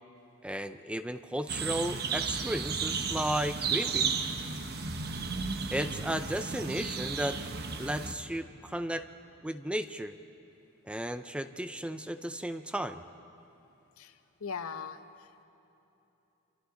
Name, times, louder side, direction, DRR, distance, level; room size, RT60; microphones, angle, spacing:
voice 1, 0.4-4.1 5.7-7.5 7.8-9.0 9.4-10.2 10.9-13.0, right 1 dB, 5° right, 9 dB, 0.5 m, -34 dB
sound 1, 1.5-8.1, right 5 dB, 50° right, 1.1 m, -33 dB
voice 2, 14.4-15.4, left 5 dB, 75° left, 10 dB, 0.9 m, -40 dB
27.0 x 26.0 x 3.9 m, 3.0 s
head